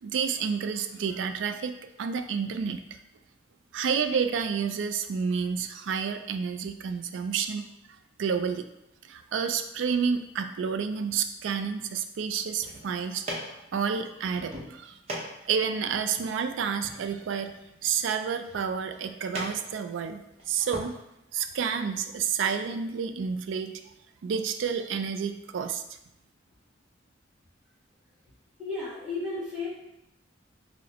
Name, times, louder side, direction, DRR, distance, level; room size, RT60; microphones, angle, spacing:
voice 1, 0.0-2.8 3.7-7.7 8.2-8.7 9.0-13.3 13.7-15.0 15.4-17.5 17.8-21.0 21.3-23.7 24.2-26.0, right 6 dB, 70° right, 8 dB, 0.3 m, -30 dB
sound 1, 12.4-20.9, right 1 dB, 35° right, 0.7 m, -42 dB
voice 2, 28.6-29.7, left 3 dB, 5° right, -11 dB, 1.4 m, -33 dB
5.7 x 2.1 x 2.8 m, 0.86 s
head